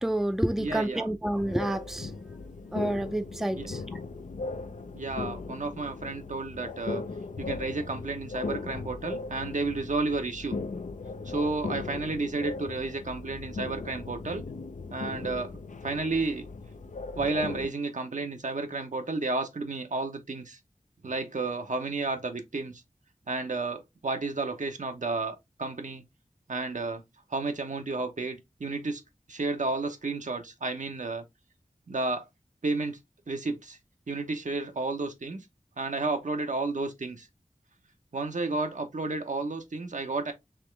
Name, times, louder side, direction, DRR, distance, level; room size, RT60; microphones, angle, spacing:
voice 1, 0.0-2.1 2.7-3.8, right 1 dB, 5° right, 0.4 m, -29 dB
voice 2, 0.6-1.1 3.5-3.7 4.9-7.0 7.4-10.6 11.2-14.4 14.9-16.5 17.2-20.6 21.0-22.8 23.3-26.0 26.5-27.0 27.3-29.0 29.3-31.2 31.9-32.2 32.6-33.0 33.3-33.8 34.1-35.4 35.8-37.3 38.1-40.3, right 3 dB, 75° right, 0.8 m, -32 dB
sound 1, 1.3-17.7, left 3 dB, 75° left, 0.5 m, -38 dB
3.6 x 2.9 x 3.2 m
wide cardioid pair, 50°, 13 cm